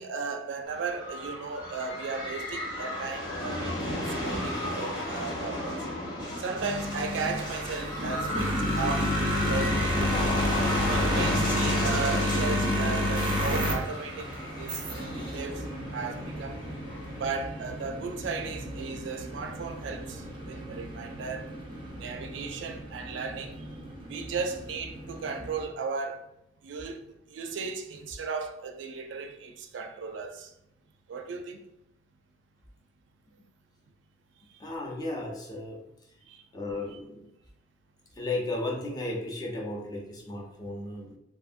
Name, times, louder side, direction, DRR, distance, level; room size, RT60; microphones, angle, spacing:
voice 1, 0.0-3.9 4.2-5.9 6.4-10.3 10.9-14.3 14.6-14.8 15.1-15.6 15.9-16.6 17.2-21.5 22.0-23.6 24.1-26.2 26.6-27.0 27.3-30.5 31.1-31.6 36.3-36.4, right 4 dB, 80° right, 0.4 m, -35 dB
sound 1, 0.7-17.3, left 1 dB, 90° left, 1.4 m, -34 dB
sound 2, 6.6-25.6, left 1 dB, 25° right, 0.5 m, -31 dB
voice 2, 34.6-35.8 36.5-37.3 38.1-41.2, left 2 dB, 20° left, 0.5 m, -34 dB
2.7 x 2.6 x 2.4 m
head